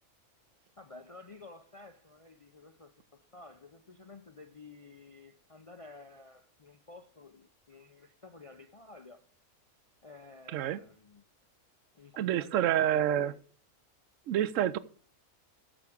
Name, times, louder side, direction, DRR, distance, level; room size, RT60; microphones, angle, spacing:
voice 1, 0.8-9.2 10.0-11.2 11.9-13.4, left 3 dB, 50° left, 0.4 m, -52 dB
voice 2, 12.2-13.3 14.3-14.8, right 11 dB, 65° right, 0.9 m, -28 dB
14.0 x 7.2 x 4.9 m
omnidirectional pair, 1.6 m